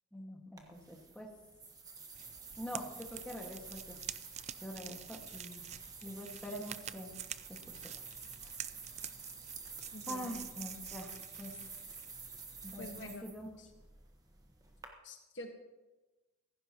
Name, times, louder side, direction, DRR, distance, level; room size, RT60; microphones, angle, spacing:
voice 1, 0.1-1.3 2.6-4.0 4.6-5.6 6.0-7.1 7.5-7.6 7.8-7.9 10.1-11.6 12.6-13.5, equal, 5° left, -1 dB, 1.7 m, -45 dB
sound 1, 0.6-14.9, right 4 dB, 20° right, 1.3 m, -50 dB
sound 2, 2.1-13.1, right 10 dB, 35° right, 0.3 m, -49 dB
voice 2, 9.9-10.3 12.8-13.2 13.6-13.7 15.0-15.6, left 1 dB, 60° left, 4 dB, 1.5 m, -46 dB
16.0 x 15.0 x 3.0 m, 1.1 s
head